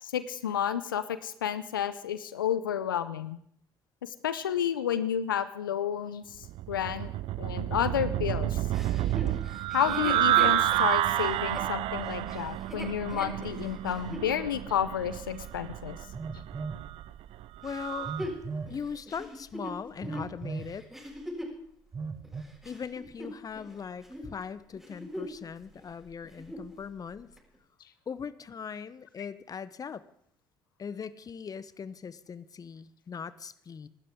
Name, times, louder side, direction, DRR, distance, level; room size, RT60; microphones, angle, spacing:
voice 1, 0.0-3.4 4.0-7.1 7.4-8.6 9.7-16.0, left 9 dB, 85° left, 14 dB, 0.6 m, -31 dB
sound 1, 6.4-18.3, right 14 dB, 60° right, 0.6 m, -30 dB
Chuckle chortle, 8.7-14.3 14.9-15.0 17.6-21.6 22.2-23.7 24.0-24.3 24.7-25.4 25.7-25.8 26.2-26.7 27.4-27.5, equal, 5° right, 6.8 m, -41 dB
Telephone, 16.1-16.8 18.0-18.8 20.0-20.7 21.9-22.4, right 4 dB, 30° right, 1.7 m, -37 dB
voice 2, 17.6-18.1 18.7-20.9 22.6-27.3 28.1-30.0 30.8-33.9, left 6 dB, 35° left, 16 dB, 0.9 m, -40 dB
26.0 x 12.5 x 3.6 m, 0.68 s
hypercardioid pair, 55°, 11 cm